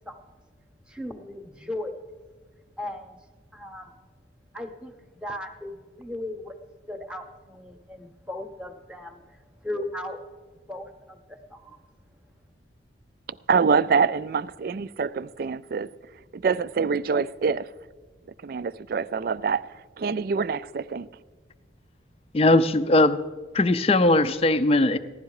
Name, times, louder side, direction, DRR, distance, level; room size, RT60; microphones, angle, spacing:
voice 1, 0.9-2.0 2.8-3.2 3.5-4.0 4.5-6.6 6.9-9.2 9.6-10.2 10.7-11.2 11.5-11.8, left 1 dB, 5° right, 0.9 m, -36 dB
voice 2, 13.5-15.9 16.3-17.7 18.4-21.1, right 5 dB, 50° right, 0.3 m, -25 dB
voice 3, 22.3-23.2 23.5-25.0, left 2 dB, 30° left, 0.4 m, -19 dB
15.5 x 11.5 x 4.8 m
head